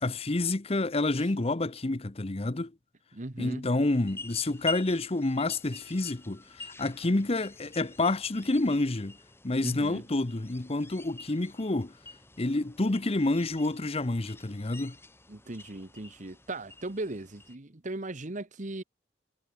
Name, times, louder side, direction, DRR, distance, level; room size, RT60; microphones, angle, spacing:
voice 1, 0.0-2.7 3.4-9.2 9.4-11.9 12.4-15.0, left 2 dB, 30° left, 0.8 m, -28 dB
voice 2, 3.1-3.7 9.6-10.0 15.3-18.8, right 2 dB, 40° right, 1.3 m, -38 dB
sound 1, 3.8-17.6, left 3 dB, 15° left, 4.2 m, -47 dB
head